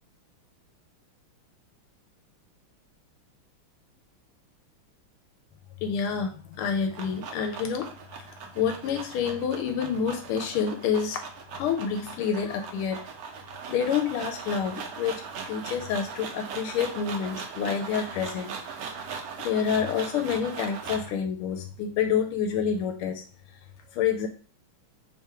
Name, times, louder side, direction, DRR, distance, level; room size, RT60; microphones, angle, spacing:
voice 1, 5.8-7.9 8.5-11.2 11.5-13.0 13.7-15.1 15.5-18.5 19.4-23.2 23.9-24.3, left 7 dB, 90° left, 5 dB, 1.5 m, -28 dB
sound 1, 6.5-21.2, right 6 dB, 75° right, 0.8 m, -39 dB
3.5 x 2.9 x 4.5 m, 0.40 s
omnidirectional pair, 2.3 m